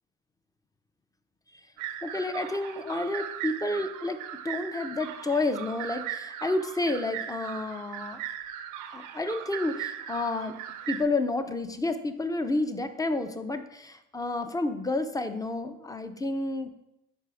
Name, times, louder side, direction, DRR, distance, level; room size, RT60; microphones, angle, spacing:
sound 1, 1.8-11.0, right 10 dB, 70° right, 0.6 m, -38 dB
voice 1, 2.0-8.2 8.9-10.6 10.9-16.7, left 2 dB, 10° left, 9 dB, 0.5 m, -30 dB
5.0 x 4.5 x 4.8 m, 0.87 s
supercardioid pair, 90°, 32 cm